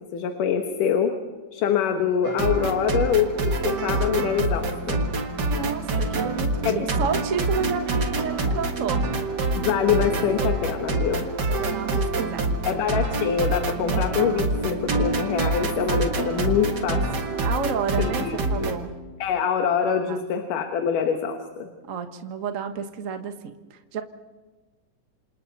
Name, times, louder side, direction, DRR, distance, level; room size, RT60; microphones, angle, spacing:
voice 1, 0.1-1.1 1.5-5.0 6.7-6.8 9.6-11.3 12.6-17.0 18.0-18.7 19.2-21.7, left 7 dB, 80° left, 4 dB, 2.9 m, -25 dB
sound 1, 2.2-18.8, right 2 dB, 40° right, 1.7 m, -26 dB
voice 2, 5.5-9.0 11.5-12.6 17.4-18.2 18.5-18.9 20.1-20.2 21.9-24.0, right 6 dB, 65° right, 6 dB, 0.8 m, -30 dB
28.0 x 27.0 x 4.1 m, 1.3 s
omnidirectional pair, 3.7 m